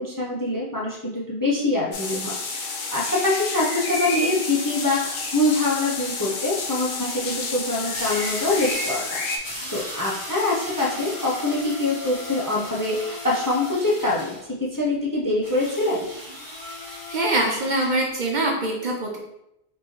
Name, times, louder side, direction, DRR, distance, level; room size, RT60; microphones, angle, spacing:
voice 1, 0.0-9.2 9.7-16.1, left 2 dB, 25° left, -4 dB, 0.5 m, -24 dB
sound 1, 1.9-9.4, left 3 dB, 90° left, 1.0 m, -30 dB
sound 2, 5.0-5.1 7.9-9.1 9.4-14.4 15.4-18.0, left 1 dB, 50° left, 1.6 m, -36 dB
voice 2, 16.9-19.2, right 1 dB, 50° right, 0 dB, 0.7 m, -24 dB
4.3 x 3.1 x 3.1 m, 0.83 s
omnidirectional pair, 1.1 m